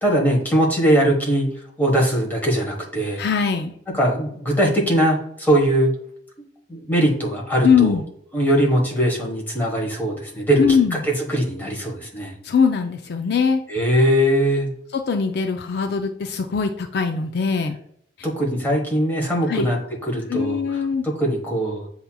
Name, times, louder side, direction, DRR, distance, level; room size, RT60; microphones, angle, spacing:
voice 1, 0.0-1.5 1.8-3.2 3.9-5.9 6.4-8.0 8.3-10.8 11.0-12.3 13.7-14.7 18.2-21.9, right 1 dB, 10° left, -2 dB, 1.2 m, -21 dB
voice 2, 3.2-3.7 7.6-8.0 10.6-11.0 12.4-13.6 14.9-17.8 18.2-18.3 19.5-19.7 20.3-21.1, left 6 dB, 60° left, 5 dB, 0.4 m, -21 dB
7.8 x 2.8 x 2.2 m, 0.69 s
head